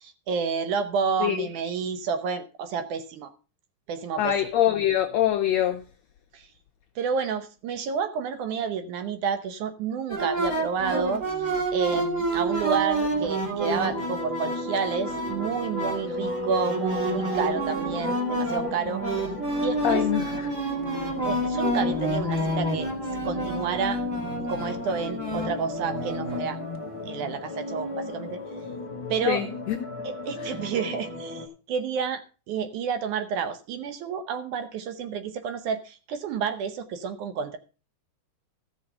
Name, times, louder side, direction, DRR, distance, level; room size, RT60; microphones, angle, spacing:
voice 1, 0.0-3.3 3.9-4.4 6.3-6.5 7.0-11.2 11.7-19.0 19.6-20.1 21.2-22.9 23.2-24.0 24.5-26.6 27.1-28.4 29.1-29.4 30.0-37.6, right 6 dB, 70° right, 9 dB, 2.2 m, -30 dB
voice 2, 4.2-5.8 19.8-20.5 29.3-29.8 30.4-30.5, left 11 dB, 85° left, 6 dB, 1.5 m, -24 dB
sound 1, 10.1-26.4, right 1 dB, 25° right, 2.2 m, -29 dB
sound 2, 13.7-31.5, left 2 dB, 25° left, 0.6 m, -36 dB
14.0 x 6.4 x 5.5 m, 0.34 s
omnidirectional pair, 4.0 m